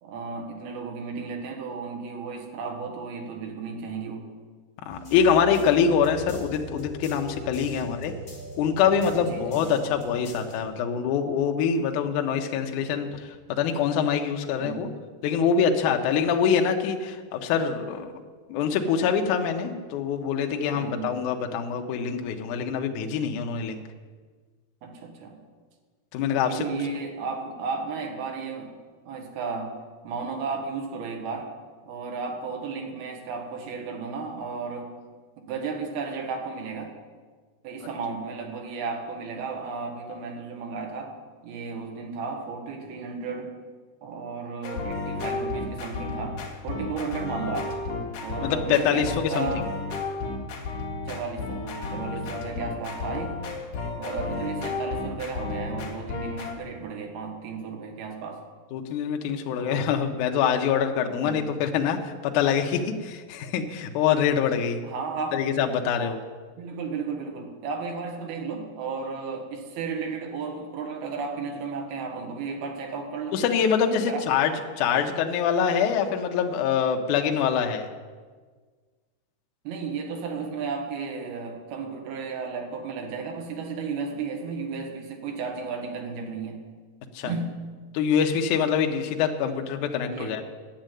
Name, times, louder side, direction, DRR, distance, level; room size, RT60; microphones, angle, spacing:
voice 1, 0.0-4.3 7.7-7.9 9.2-9.7 14.6-14.9 20.7-21.1 24.8-25.4 26.4-28.7 29.1-29.7 30.0-31.5 31.8-34.9 35.4-36.9 37.6-41.1 41.4-43.5 44.0-46.4 46.6-47.7 48.2-49.7 51.1-53.4 54.0-58.4 59.6-59.8 61.2-61.4 64.8-65.4 66.6-73.4 74.0-74.2 74.8-74.9 79.6-86.6 87.2-87.5 90.1-90.4, right 5 dB, 70° right, 3 dB, 3.2 m, -34 dB
voice 2, 4.9-8.1 8.6-14.9 15.2-18.1 18.5-23.8 26.1-26.7 48.4-49.6 58.7-64.8 65.3-66.2 73.3-74.5 74.8-77.9 87.1-87.3 87.9-90.4, left 7 dB, 80° left, 4 dB, 1.8 m, -25 dB
sound 1, 4.9-10.6, right 1 dB, 25° left, 2.7 m, -40 dB
sound 2, 44.6-56.6, left 3 dB, 60° left, 2.7 m, -33 dB
10.5 x 7.5 x 9.1 m, 1.5 s
omnidirectional pair, 4.8 m